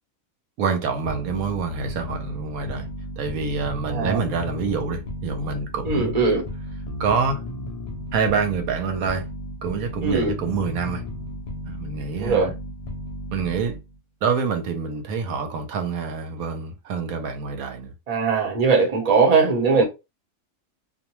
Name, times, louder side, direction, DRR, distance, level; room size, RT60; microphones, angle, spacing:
voice 1, 0.6-2.9 3.2-6.1 7.0-7.4 8.1-9.2 9.6-11.0 11.6-12.5 13.3-13.8 14.2-17.9 19.8-19.9, right 5 dB, 85° right, 1.0 m, -26 dB
sound 1, 1.1-14.0, equal, 75° left, 0.3 m, -34 dB
voice 2, 3.9-4.2 5.8-6.4 10.0-10.3 12.2-12.5 18.1-19.8, right 4 dB, 30° right, 0.8 m, -20 dB
2.4 x 2.1 x 2.9 m
omnidirectional pair, 1.5 m